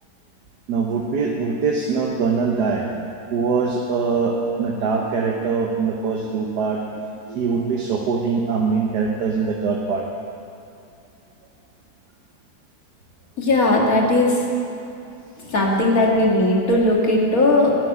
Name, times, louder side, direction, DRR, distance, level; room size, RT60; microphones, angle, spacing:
voice 1, 0.7-3.0 3.3-6.8 7.2-10.0, right 5 dB, 75° right, 0 dB, 1.6 m, -23 dB
voice 2, 13.4-14.4 15.5-17.8, left 2 dB, 55° left, -2 dB, 2.2 m, -18 dB
12.0 x 7.3 x 9.8 m, 2.5 s
omnidirectional pair, 1.8 m